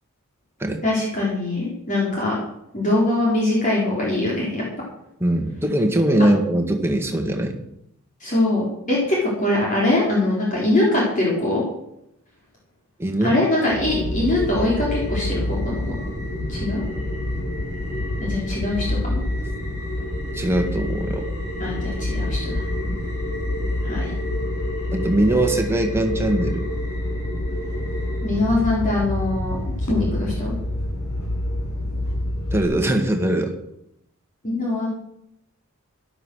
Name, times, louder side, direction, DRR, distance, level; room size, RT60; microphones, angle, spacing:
voice 1, 0.8-2.4 2.7-4.6 6.2-6.3 8.2-11.6 13.2-15.9 16.5-16.8 18.2-19.2 21.6-22.6 23.8-24.1 28.2-30.5 34.4-34.9, left 2 dB, 35° left, -5 dB, 4.4 m, -22 dB
voice 2, 5.2-7.5 13.0-13.4 20.3-21.3 22.9-23.0 24.9-26.6 32.5-33.5, right 1 dB, 10° right, 3 dB, 1.8 m, -21 dB
sound 1, 13.7-32.6, left 1 dB, 80° left, 7.1 m, -27 dB
13.0 x 12.0 x 6.5 m, 0.79 s
head